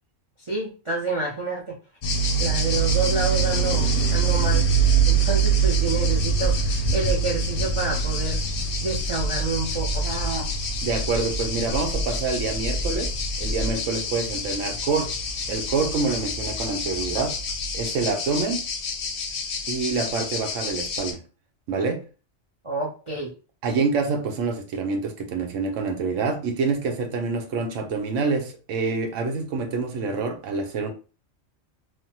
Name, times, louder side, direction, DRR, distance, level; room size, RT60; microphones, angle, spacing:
voice 1, 0.5-1.8 2.4-4.7 5.1-8.4 8.8-10.5 22.6-23.3, right 3 dB, 40° right, 0.4 m, -28 dB
sound 1, 2.0-21.1, right 3 dB, 60° left, 0.6 m, -25 dB
sound 2, 4.1-13.8, equal, 10° right, 0.9 m, -31 dB
voice 2, 10.8-15.1 15.5-17.4 17.7-18.6 19.7-21.2 21.7-22.0 23.6-30.9, right 4 dB, 75° right, 1.0 m, -26 dB
3.3 x 2.1 x 2.7 m
omnidirectional pair, 1.3 m